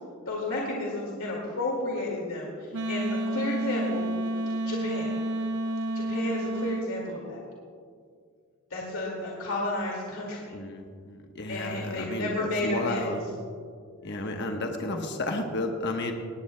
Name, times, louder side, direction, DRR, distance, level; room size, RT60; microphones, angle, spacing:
voice 1, 0.3-4.1 4.6-5.1 5.9-7.4 8.7-10.5 11.5-13.0 14.1-14.5, left 2 dB, 70° left, -3 dB, 2.2 m, -32 dB
Wind instrument woodwind instrument, 2.7-6.9, right 1 dB, 90° right, 0.9 m, -30 dB
voice 2, 10.5-13.2 14.0-16.1, left 2 dB, 50° left, 3 dB, 1.1 m, -32 dB
19.5 x 17.5 x 2.2 m, 2.1 s
head